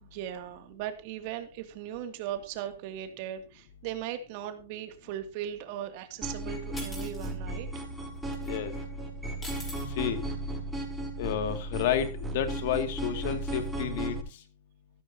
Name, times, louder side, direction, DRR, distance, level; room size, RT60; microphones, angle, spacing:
voice 1, 0.0-7.7, right 11 dB, 45° right, 7 dB, 2.6 m, -38 dB
sound 1, 6.2-14.2, right 1 dB, 5° right, 6.8 m, -35 dB
sound 2, 6.8-7.3 8.3-8.5 9.4-9.8, left 1 dB, 15° left, 6.2 m, -42 dB
voice 2, 8.4-8.7 10.0-10.2 11.2-12.1 12.3-14.2, left 10 dB, 55° left, 8 dB, 2.4 m, -30 dB
15.0 x 13.5 x 2.9 m, 0.30 s
hypercardioid pair, 140°, 0 cm